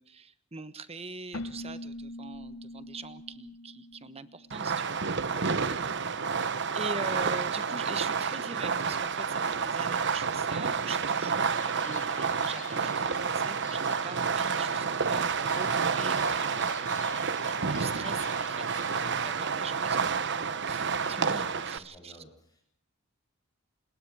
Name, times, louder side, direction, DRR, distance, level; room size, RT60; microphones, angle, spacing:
voice 1, 0.0-5.0 5.3-5.7 6.7-17.3 17.6-22.2, right 4 dB, 30° right, 13 dB, 1.2 m, -42 dB
Keyboard (musical), 1.3-5.0, left 1 dB, 65° left, 0.9 m, -43 dB
Fireworks, 4.5-21.8, right 5 dB, 55° right, 1.0 m, -29 dB
voice 2, 5.3-5.8 21.0-22.6, left 1 dB, 20° left, 1 dB, 7.1 m, -52 dB
sound 1, 11.5-19.0, left 7 dB, 35° left, 2.2 m, -49 dB
29.0 x 20.5 x 4.8 m, 0.65 s
head